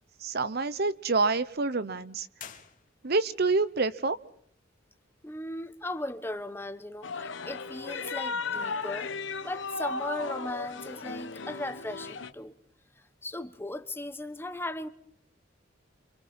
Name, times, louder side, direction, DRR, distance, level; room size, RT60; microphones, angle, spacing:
voice 1, 0.2-2.3 3.0-4.2, right 3 dB, 55° right, 1.0 m, -27 dB
sound 1, 2.3-3.4, left 8 dB, 45° left, 2.5 m, -48 dB
voice 2, 5.2-9.1 9.4-12.5 13.2-14.9, left 1 dB, 10° left, 1.1 m, -37 dB
sound 2, 7.0-12.3, left 4 dB, 70° left, 1.2 m, -36 dB
28.5 x 26.5 x 4.4 m
head